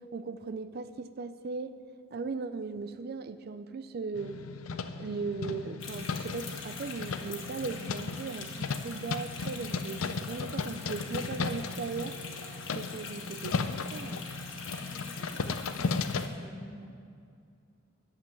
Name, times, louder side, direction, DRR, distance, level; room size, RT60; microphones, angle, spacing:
voice 1, 0.1-1.7 2.1-4.4 5.0-12.2 12.7-14.2, right 4 dB, 50° right, 11 dB, 0.4 m, -38 dB
sound 1, 4.1-16.3, left 4 dB, 85° left, 0.5 m, -36 dB
sound 2, 5.8-16.3, left 5 dB, 65° left, 1.6 m, -44 dB
voice 2, 14.8-16.8, left 1 dB, 25° left, -4 dB, 1.3 m, -50 dB
11.0 x 7.6 x 7.7 m, 2.4 s
head